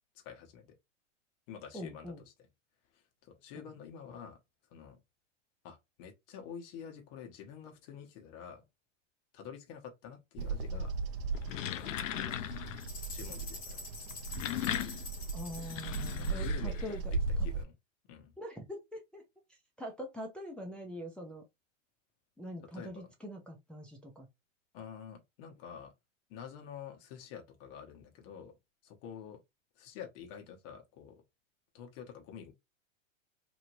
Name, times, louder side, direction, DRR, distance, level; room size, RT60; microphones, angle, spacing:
voice 1, 0.2-0.7 1.5-2.1 2.9-4.4 4.7-5.0 5.6-8.7 9.3-10.9 11.5-11.9 13.1-13.9 16.2-17.0 17.4-17.7 18.1-18.3 22.7-23.1 24.7-25.9 26.3-28.6 28.8-29.4 29.7-31.2 31.7-32.5, left 8 dB, 45° left, 1.1 m, -48 dB
voice 2, 1.7-2.2 3.5-3.6 15.3-17.1 18.4-19.2 19.8-21.4 22.4-24.3, equal, 5° left, 0.4 m, -43 dB
Bird vocalization bird call bird song, 10.4-17.6, right 3 dB, 45° right, 0.6 m, -37 dB
sound 1, 11.2-12.9 14.1-17.1, left 11 dB, 80° left, 0.5 m, -38 dB
sound 2, 12.8-16.5, left 4 dB, 20° left, 1.1 m, -47 dB
3.1 x 2.7 x 2.6 m
hypercardioid pair, 110°, 38 cm